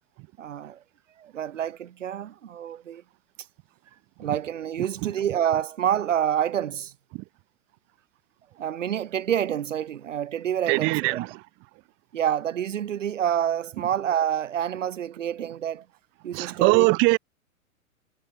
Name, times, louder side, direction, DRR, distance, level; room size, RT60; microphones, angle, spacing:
voice 1, 0.4-0.8 1.2-3.0 4.2-6.9 8.6-11.3 12.1-15.8 16.2-17.0, right 10 dB, 60° right, 4.7 m, -28 dB
voice 2, 10.7-11.3 16.3-17.2, right 28 dB, 25° right, 1.3 m, -21 dB
figure-of-eight pair, 115°, 42 cm